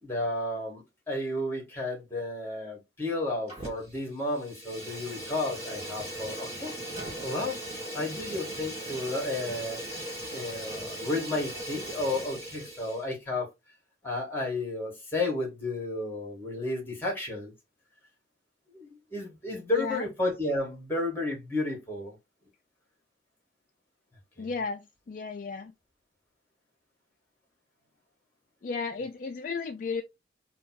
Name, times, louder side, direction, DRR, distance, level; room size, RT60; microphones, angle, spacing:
voice 1, 0.0-6.7 7.2-7.6 7.9-9.8 10.3-13.5 14.0-17.5 18.7-22.1 24.4-24.5, left 2 dB, 10° left, 1.6 m, -32 dB
Fire, 3.5-4.0 4.3-13.0, right 1 dB, 30° right, 1.8 m, -38 dB
voice 2, 24.4-25.7 28.6-30.0, left 4 dB, 45° left, 0.3 m, -34 dB
3.3 x 2.4 x 4.2 m
head